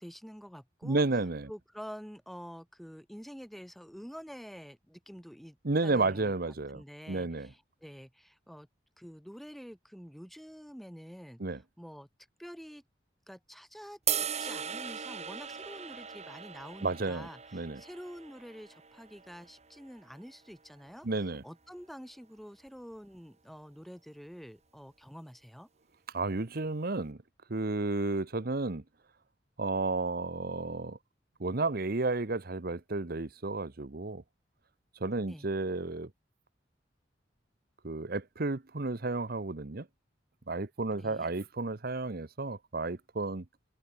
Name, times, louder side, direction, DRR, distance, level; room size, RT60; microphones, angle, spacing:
voice 1, 0.0-1.0 1.5-5.6 5.8-6.3 6.7-8.7 9.0-12.1 12.4-12.8 13.3-21.1 21.4-25.7 35.2-35.5 40.9-41.3, equal, ahead, 5.5 m, -48 dB
voice 2, 0.8-1.5 5.6-7.5 11.4-11.6 16.8-17.8 21.0-21.4 26.1-27.2 27.5-28.8 29.6-31.0 31.4-34.2 35.0-36.1 37.8-39.9 40.5-43.4, right 3 dB, 55° right, 1.0 m, -32 dB
sound 1, 14.1-20.3, right 8 dB, 35° right, 2.4 m, -38 dB
head